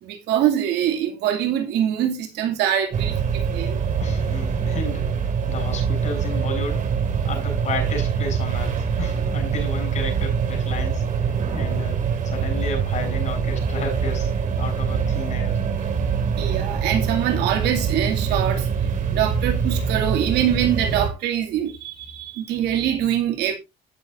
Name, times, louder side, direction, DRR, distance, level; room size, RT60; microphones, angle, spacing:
voice 1, 0.0-3.8 16.4-23.5, right 10 dB, 85° right, 2.5 m, -24 dB
sound 1, 2.9-21.1, right 6 dB, 50° right, 2.6 m, -24 dB
voice 2, 4.0-5.1 5.5-6.9 7.2-11.0 11.5-12.0 12.2-15.9, left 3 dB, 45° left, 7.1 m, -32 dB
16.0 x 6.8 x 2.6 m
cardioid pair, 110°, 17 cm